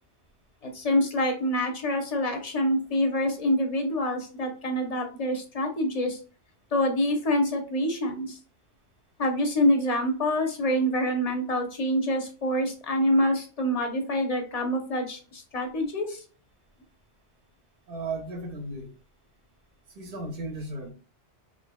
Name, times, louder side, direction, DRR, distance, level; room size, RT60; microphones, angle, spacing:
voice 1, 0.6-6.2 6.7-8.4 9.2-16.2, left 1 dB, 40° left, 0.7 m, -26 dB
voice 2, 17.9-18.9 20.0-20.9, right 2 dB, 55° right, 1.0 m, -35 dB
3.9 x 3.0 x 2.2 m
omnidirectional pair, 1.2 m